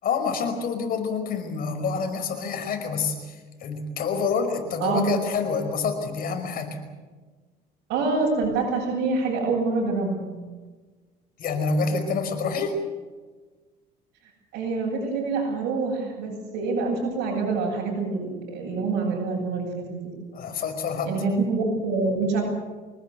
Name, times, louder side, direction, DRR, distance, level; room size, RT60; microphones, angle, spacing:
voice 1, 0.0-6.8 11.4-12.8 20.3-21.1, left 5 dB, 55° left, 6 dB, 5.2 m, -27 dB
voice 2, 7.9-10.3 14.5-20.1 21.0-22.4, right 3 dB, 90° right, -5 dB, 7.9 m, -26 dB
25.5 x 19.5 x 8.2 m, 1.4 s
cardioid pair, 125°, 18 cm